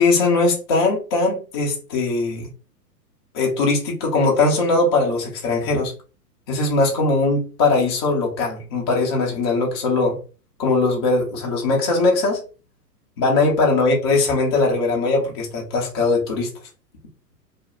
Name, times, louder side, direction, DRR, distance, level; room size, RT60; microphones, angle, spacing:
voice 1, 0.0-2.5 3.3-5.9 6.5-10.2 10.6-12.4 13.2-16.5, left 3 dB, 20° left, 0.3 m, -20 dB
2.4 x 2.1 x 2.8 m
hypercardioid pair, 110°, 49 cm